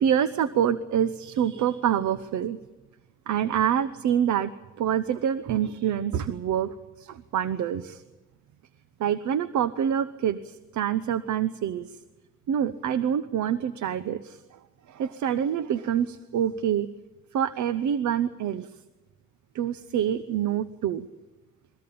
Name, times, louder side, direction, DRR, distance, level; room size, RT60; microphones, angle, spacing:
voice 1, 0.0-2.6 3.3-4.5 4.8-8.0 9.0-12.0 12.5-14.6 14.9-16.9 17.3-18.7 19.5-21.1, right 9 dB, 75° right, 13 dB, 1.0 m, -26 dB
22.5 x 18.0 x 8.6 m, 1.1 s
cardioid pair, 90°, 30 cm